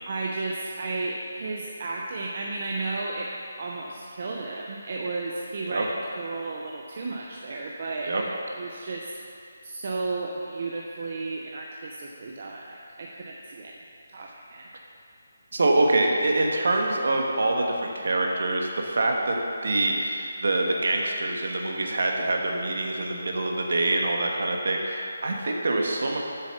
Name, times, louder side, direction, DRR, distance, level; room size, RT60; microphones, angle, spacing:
voice 1, 0.1-3.3 3.6-5.9 6.1-8.2 8.5-9.1 9.6-13.7 14.1-14.7, right 3 dB, 30° right, -2 dB, 0.6 m, -33 dB
voice 2, 15.5-19.3 19.6-26.2, right 2 dB, 50° right, 1 dB, 1.3 m, -25 dB
7.4 x 7.0 x 6.7 m, 2.6 s
hypercardioid pair, 180°, 0 cm